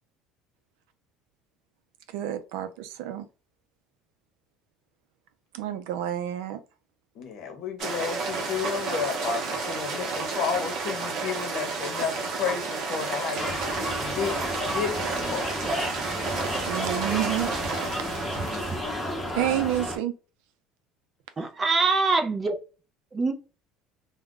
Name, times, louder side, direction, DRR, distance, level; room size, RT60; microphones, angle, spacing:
voice 1, 2.1-3.3 5.5-6.6 16.3-17.8 19.3-20.1, right 12 dB, 85° right, 0.5 m, -29 dB
voice 2, 7.1-14.4 14.6-15.5 17.9-18.6, left 6 dB, 45° left, 0.8 m, -32 dB
sound 1, 7.8-19.1, right 4 dB, 50° right, 0.8 m, -31 dB
sound 2, 13.4-20.0, equal, 10° left, 0.8 m, -32 dB
voice 3, 21.4-22.6 23.1-23.3, right 3 dB, 20° right, 0.4 m, -24 dB
2.4 x 2.2 x 3.7 m
cardioid pair, 165°, 0 cm